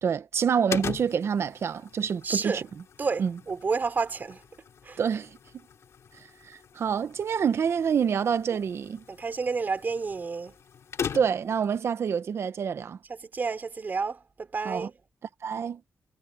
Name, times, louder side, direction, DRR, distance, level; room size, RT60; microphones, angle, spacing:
voice 1, 0.0-2.6 3.2-3.3 5.0-5.4 6.2-9.0 11.1-13.0 14.6-14.9 15.4-15.8, right 7 dB, 60° right, 1.0 m, -27 dB
sound 1, 0.7-11.6, left 7 dB, 70° left, 2.7 m, -41 dB
voice 2, 2.2-2.6 3.0-4.4 4.8-5.0 9.1-10.5 13.2-14.9, right 4 dB, 35° right, 3.9 m, -30 dB
wide cardioid pair, 150°, 5 cm